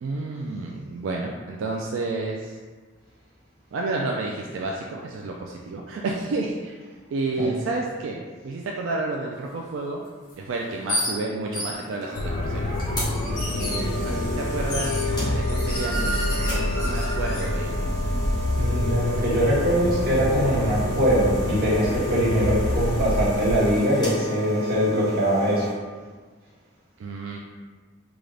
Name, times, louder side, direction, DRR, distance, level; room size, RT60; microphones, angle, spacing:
voice 1, 0.0-2.6 3.7-6.7 7.1-10.0 10.4-12.7 13.5-17.8 27.0-27.4, right 3 dB, 85° right, -1 dB, 0.3 m, -30 dB
sound 1, 10.3-10.4 10.9-11.1 11.5-12.2 12.8-14.1 14.7-17.5, equal, 45° left, 0.8 m, -31 dB
sound 2, 11.7-25.7, equal, 20° left, 1.0 m, -34 dB
sound 3, 12.2-23.6, left 1 dB, 85° left, 0.4 m, -27 dB
voice 2, 18.5-25.7, equal, 50° right, -8 dB, 1.3 m, -22 dB
3.7 x 2.4 x 3.2 m, 1.4 s
head